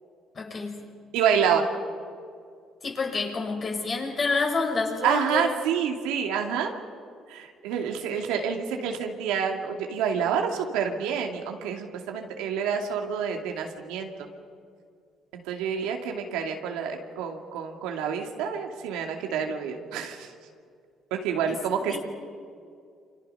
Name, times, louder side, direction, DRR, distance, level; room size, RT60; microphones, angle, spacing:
voice 1, 0.3-0.8 2.8-5.6 21.5-21.6 21.9-22.0, left 4 dB, 45° left, 2 dB, 5.9 m, -28 dB
voice 2, 1.1-1.7 5.0-6.7 7.3-14.3 15.3-20.3 21.1-22.0, right 7 dB, 90° right, 3 dB, 2.5 m, -28 dB
28.5 x 26.5 x 5.6 m, 2.3 s
supercardioid pair, 80°, 0 cm